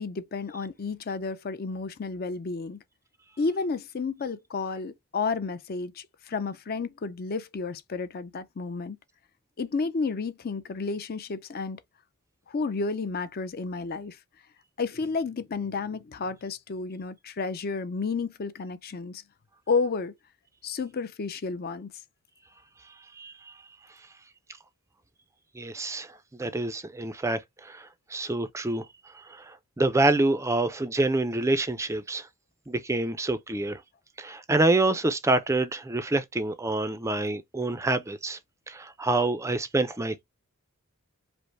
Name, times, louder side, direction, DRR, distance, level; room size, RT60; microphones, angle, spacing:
voice 1, 0.0-2.8 3.4-9.0 9.6-11.8 12.5-14.2 14.8-19.2 19.7-20.1 20.6-21.9, left 4 dB, 45° left, 0.5 m, -31 dB
voice 2, 23.2-23.5 25.6-28.9 29.3-32.3 32.7-33.8 34.2-38.4 38.7-40.2, right 2 dB, 15° right, 0.4 m, -27 dB
5.2 x 2.0 x 4.5 m
head